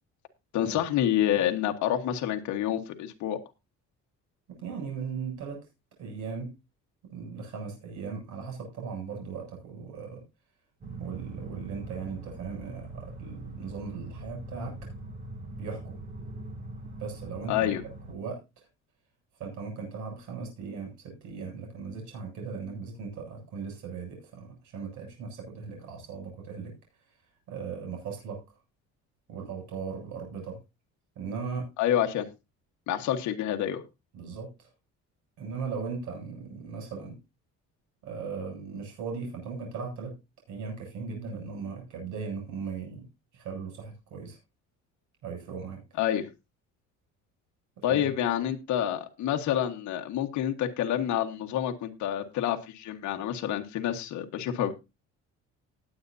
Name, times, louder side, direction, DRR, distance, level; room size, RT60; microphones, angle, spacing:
voice 1, 0.5-3.4 17.5-17.8 31.8-32.3 32.9-33.8 46.0-46.3 47.8-54.8, left 11 dB, 70° left, 4 dB, 1.6 m, -28 dB
voice 2, 4.5-5.7 6.0-6.5 7.1-10.2 11.0-14.7 15.6-15.9 17.0-17.8 18.1-18.4 19.4-26.7 27.5-28.4 29.3-30.6 31.2-31.7 34.1-34.7 35.4-37.2 38.0-40.1 40.5-43.1 43.3-44.4 45.2-45.8 47.8-48.1, right 5 dB, 70° right, 1 dB, 7.7 m, -38 dB
sound 1, 10.8-18.1, right 2 dB, 25° right, 2.4 m, -42 dB
19.0 x 8.1 x 2.7 m, 0.26 s
cardioid pair, 175°, 30 cm